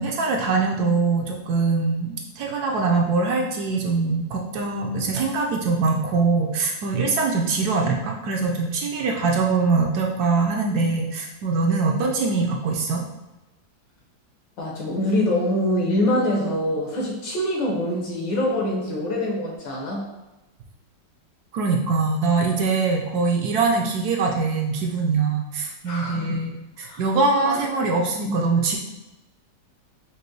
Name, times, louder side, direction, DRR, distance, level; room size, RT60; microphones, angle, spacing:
voice 1, 0.0-13.0 21.5-26.5 26.8-28.8, right 4 dB, 70° right, 1 dB, 1.0 m, -23 dB
voice 2, 14.6-20.0 25.9-26.4 26.8-27.0 27.4-27.6 28.2-28.3, left 1 dB, 80° left, -3 dB, 1.8 m, -24 dB
5.2 x 2.6 x 3.0 m, 1.0 s
omnidirectional pair, 1.9 m